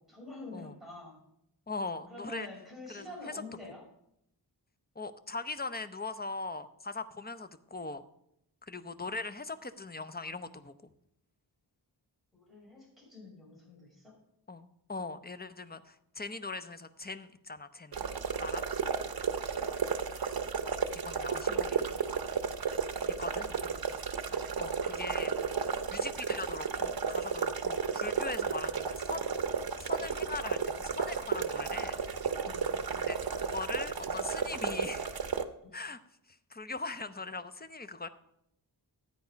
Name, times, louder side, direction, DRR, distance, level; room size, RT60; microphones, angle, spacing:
voice 1, 0.1-1.2 2.1-3.8 12.3-14.1 23.4-23.9 24.2-24.4 32.4-32.6 35.6-35.9, left 2 dB, ahead, -4 dB, 6.3 m, -47 dB
voice 2, 1.7-2.5 2.9-3.3 5.0-8.1 8.6-10.9 14.5-18.1 18.4-18.7 21.0-21.9 23.2-23.5 24.6-25.3 25.9-29.3 29.8-32.0 33.0-35.2 35.7-36.0 36.3-38.1, left 3 dB, 20° left, 11 dB, 0.7 m, -40 dB
sound 1, 17.9-35.4, right 6 dB, 60° right, 0.8 m, -33 dB
13.0 x 9.2 x 5.2 m, 0.78 s
wide cardioid pair, 95°, 42 cm